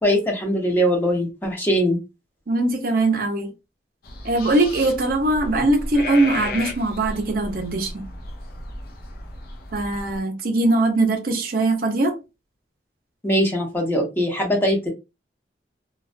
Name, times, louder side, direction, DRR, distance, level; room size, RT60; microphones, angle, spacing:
voice 1, 0.0-2.0 13.2-14.9, equal, 10° left, 0.6 m, -21 dB
voice 2, 2.5-3.5 4.2-8.1 9.7-12.2, right 2 dB, 55° right, 0.5 m, -21 dB
sound 1, 4.0-10.2, left 2 dB, 55° left, 0.5 m, -34 dB
2.3 x 2.2 x 2.4 m
head